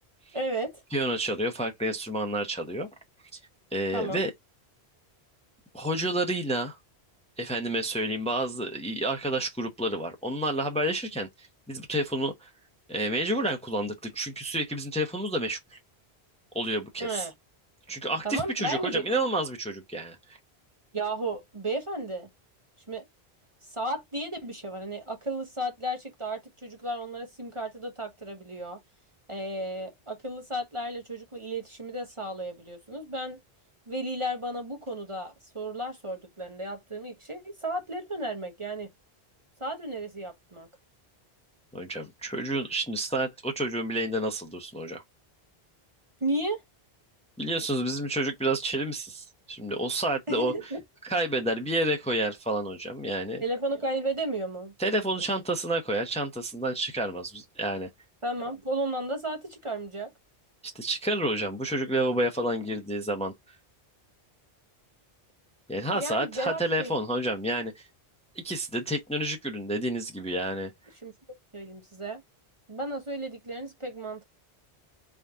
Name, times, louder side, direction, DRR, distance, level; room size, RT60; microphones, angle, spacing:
voice 1, 0.3-0.8 3.9-4.2 17.0-17.3 18.2-19.0 20.9-22.3 22.9-23.1 23.7-28.8 29.3-33.4 33.9-38.9 39.6-40.7 46.2-46.6 50.3-50.8 53.4-54.7 58.2-60.1 65.9-66.9 71.0-71.1 71.5-72.2 72.7-74.2, right 1 dB, 30° right, 1.0 m, -33 dB
voice 2, 0.9-2.9 3.3-3.4 3.7-4.3 5.7-6.8 7.4-12.5 12.9-15.8 16.5-17.3 17.9-20.4 41.7-45.0 47.4-50.5 51.0-53.4 54.8-57.9 60.7-63.6 65.7-67.9 68.4-70.7, right 1 dB, 5° left, 0.8 m, -29 dB
4.2 x 3.6 x 3.5 m
omnidirectional pair, 1.1 m